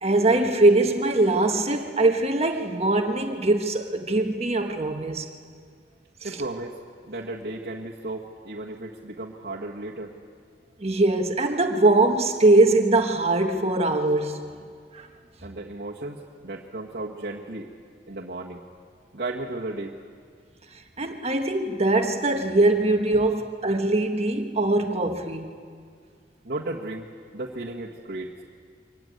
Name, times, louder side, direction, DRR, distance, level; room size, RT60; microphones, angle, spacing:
voice 1, 0.0-5.3 6.2-6.3 10.8-14.5 14.9-15.1 21.0-25.6, right 2 dB, 35° right, 1.4 m, -22 dB
voice 2, 6.2-6.8 7.1-10.1 15.4-17.7 18.1-18.6 19.1-20.0 23.1-23.3 26.4-27.1 27.3-28.3, right 2 dB, 60° right, 1.7 m, -34 dB
24.0 x 15.0 x 9.4 m
head